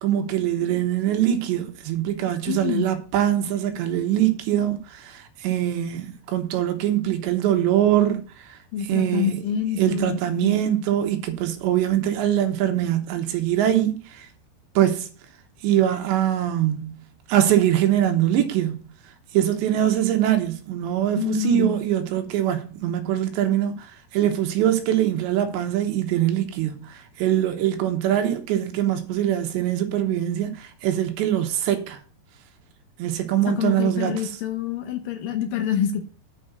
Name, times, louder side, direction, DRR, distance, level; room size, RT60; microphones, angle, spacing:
voice 1, 0.0-9.4 9.8-14.3 14.8-15.1 15.6-17.0 17.3-18.8 19.3-32.0 33.0-34.4, right 11 dB, 75° right, 3.2 m, -23 dB
voice 2, 2.5-2.9 8.7-10.6 21.2-21.8 33.6-36.1, left 9 dB, 80° left, 1.9 m, -27 dB
9.0 x 5.3 x 6.6 m
omnidirectional pair, 5.5 m